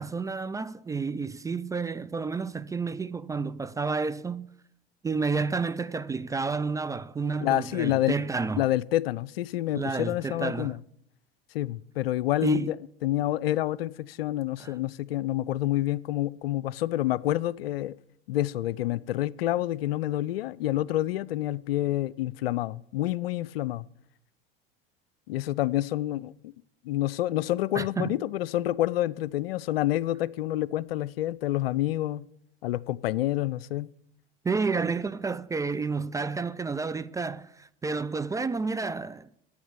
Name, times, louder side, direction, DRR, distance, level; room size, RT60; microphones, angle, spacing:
voice 1, 0.0-4.5 5.0-8.7 9.7-10.8 12.4-12.8 14.6-14.7 27.7-28.2 34.4-39.4, right 4 dB, 10° right, 0.3 m, -30 dB
voice 2, 7.4-8.2 8.6-10.8 11.5-12.8 13.0-17.9 18.3-23.8 25.3-26.5 26.8-32.2 32.6-33.9, left 14 dB, 80° left, 0.5 m, -28 dB
8.8 x 7.2 x 8.8 m
hypercardioid pair, 80°, 30 cm